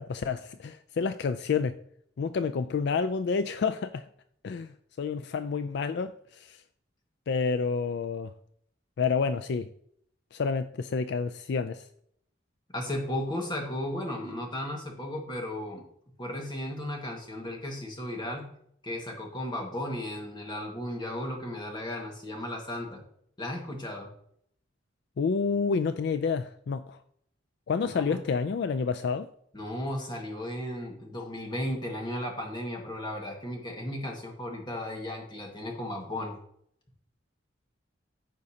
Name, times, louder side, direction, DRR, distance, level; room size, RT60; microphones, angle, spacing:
voice 1, 0.0-1.8 2.2-4.1 4.4-6.6 7.3-8.3 9.0-9.7 10.3-11.9 25.2-27.0 27.7-29.3, left 5 dB, 60° left, 0.4 m, -29 dB
voice 2, 12.7-15.8 16.2-18.5 18.8-23.0 23.4-24.1 27.8-28.2 29.5-36.4, left 1 dB, 25° left, 1.6 m, -35 dB
14.5 x 5.3 x 2.8 m
head